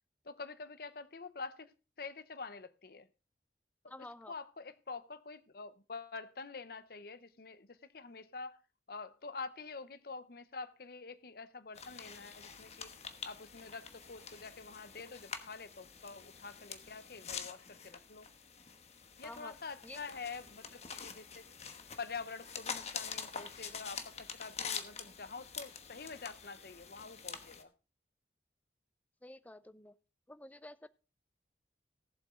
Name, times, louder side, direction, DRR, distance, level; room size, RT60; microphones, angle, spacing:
voice 1, 0.2-1.7 2.0-3.1 4.0-8.6 8.9-12.9 13.2-18.3 19.2-21.4 22.0-27.7, left 4 dB, 55° left, 0.8 m, -46 dB
voice 2, 3.9-4.3 19.2-19.5 19.8-20.0 29.2-29.9 30.3-30.9, left 1 dB, 10° left, 0.5 m, -50 dB
sound 1, 11.7-27.6, left 6 dB, 35° left, 1.1 m, -46 dB
17.5 x 7.7 x 3.7 m
head